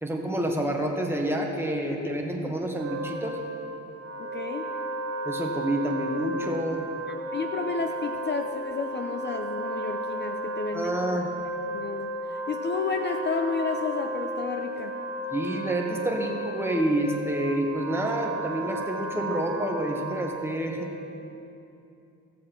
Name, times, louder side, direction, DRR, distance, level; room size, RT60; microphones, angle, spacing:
voice 1, 0.0-3.4 5.2-6.8 10.7-11.3 15.3-20.9, right 1 dB, 10° right, 0 dB, 1.5 m, -28 dB
Wind instrument woodwind instrument, 2.7-20.8, right 1 dB, 60° right, 1.2 m, -34 dB
voice 2, 4.2-4.7 7.3-11.2 11.7-14.9, left 4 dB, 35° left, 5 dB, 0.6 m, -31 dB
16.0 x 7.4 x 4.6 m, 2.8 s
cardioid pair, 90°, 30 cm